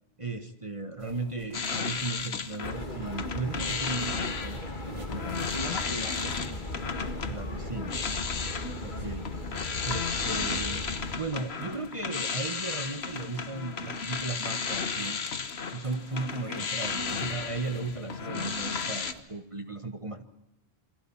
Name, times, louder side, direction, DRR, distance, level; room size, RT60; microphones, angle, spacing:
voice 1, 0.2-4.6 4.9-5.5 7.3-8.0 8.8-9.3 9.8-10.9 11.2-15.2 15.7-20.2, right 3 dB, 30° right, 7 dB, 1.4 m, -36 dB
sound 1, 1.0-7.6 8.8-19.2, right 2 dB, 85° right, 3.3 m, -54 dB
sound 2, 1.5-2.8 3.1-19.1, left 5 dB, 85° left, 1.4 m, -34 dB
sound 3, 2.6-11.1, left 1 dB, 50° left, 2.5 m, -37 dB
voice 2, 5.5-6.6 9.0-9.2 16.3-16.6 18.2-18.6, left 1 dB, 25° left, 7 dB, 1.9 m, -40 dB
28.0 x 23.0 x 5.7 m, 0.85 s
omnidirectional pair, 1.0 m